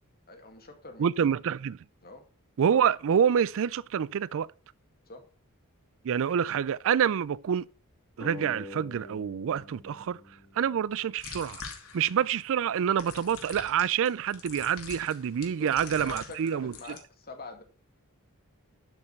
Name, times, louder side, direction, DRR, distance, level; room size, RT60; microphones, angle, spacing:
voice 1, 0.3-1.3 2.0-2.2 5.1-5.2 15.4-17.6, left 3 dB, 45° left, 2.3 m, -45 dB
voice 2, 1.0-1.8 2.6-4.5 6.0-7.7 8.2-10.2 10.5-11.6 11.9-16.7, right 8 dB, 60° right, 0.4 m, -27 dB
sound 1, 8.2-11.4, left 1 dB, 15° left, 1.9 m, -46 dB
sound 2, 11.2-12.3 13.0-17.0, left 5 dB, 70° left, 2.7 m, -44 dB
12.0 x 5.6 x 5.8 m
head